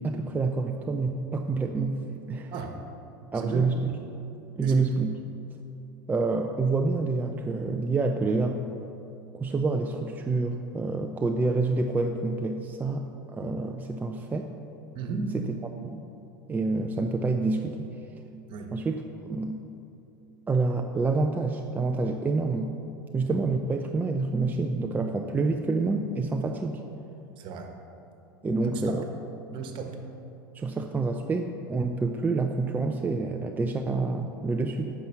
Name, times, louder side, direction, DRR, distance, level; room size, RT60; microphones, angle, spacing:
voice 1, 0.0-2.5 3.3-3.8 4.6-5.1 6.1-8.6 9.3-14.5 15.3-15.4 15.8-16.0 16.5-17.9 18.7-19.6 20.5-22.7 23.1-26.8 28.4-29.0 30.5-34.9, right 3 dB, 15° right, 3 dB, 0.5 m, -27 dB
voice 2, 3.3-3.7 4.6-4.9 14.9-15.3 18.5-18.7 27.4-27.7 28.6-28.9 29.5-30.0, right 4 dB, 45° right, 4 dB, 1.3 m, -35 dB
9.3 x 6.1 x 5.9 m, 2.7 s
hypercardioid pair, 90°, 11 cm